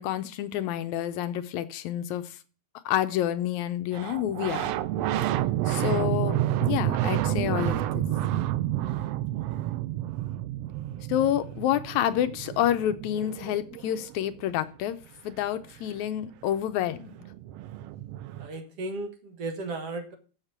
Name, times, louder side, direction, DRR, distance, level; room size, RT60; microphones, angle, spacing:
voice 1, 0.0-2.4 2.9-4.7 5.7-8.1 11.1-15.0 15.2-17.1, left 11 dB, 80° left, 11 dB, 2.0 m, -28 dB
sound 1, 3.9-14.3 16.4-16.5 16.7-18.5, right 13 dB, 80° right, 1.4 m, -30 dB
voice 2, 18.4-20.1, right 2 dB, 55° right, 5 dB, 2.3 m, -35 dB
7.4 x 7.2 x 8.0 m, 0.38 s
omnidirectional pair, 3.4 m